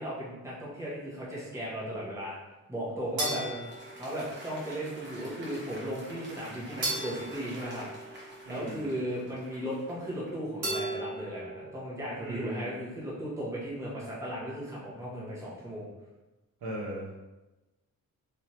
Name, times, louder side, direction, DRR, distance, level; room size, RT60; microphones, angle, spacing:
voice 1, 0.0-2.3 2.7-3.4 3.9-7.9 8.5-15.9, equal, 10° right, -8 dB, 1.0 m, -36 dB
Applause, 2.9-10.5, right 1 dB, 35° right, 1.0 m, -48 dB
sound 1, 3.2-4.7 6.8-8.7 10.6-11.8, right 2 dB, 60° right, 1.5 m, -36 dB
voice 2, 3.2-3.7 8.4-8.8 12.2-12.7 16.6-17.1, right 1 dB, 85° right, -9 dB, 1.0 m, -38 dB
3.3 x 3.1 x 2.8 m, 1.1 s
wide cardioid pair, 160°, 33 cm